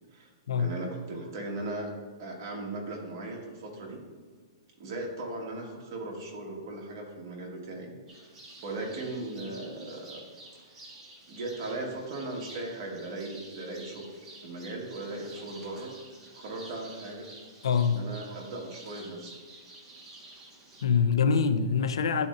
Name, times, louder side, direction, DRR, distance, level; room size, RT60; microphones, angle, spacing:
voice 1, 0.1-1.9 2.2-4.0 4.8-8.3 8.6-10.2 10.6-10.7 11.3-14.1 14.4-15.9 16.3-17.3 17.9-19.3, right 2 dB, 45° right, 1.4 m, -38 dB
sound 1, 8.1-20.8, right 2 dB, 15° right, 0.9 m, -50 dB
voice 2, 17.6-18.0 20.8-22.3, left 6 dB, 90° left, 0.4 m, -24 dB
10.5 x 4.2 x 2.5 m
hypercardioid pair, 165°, 3 cm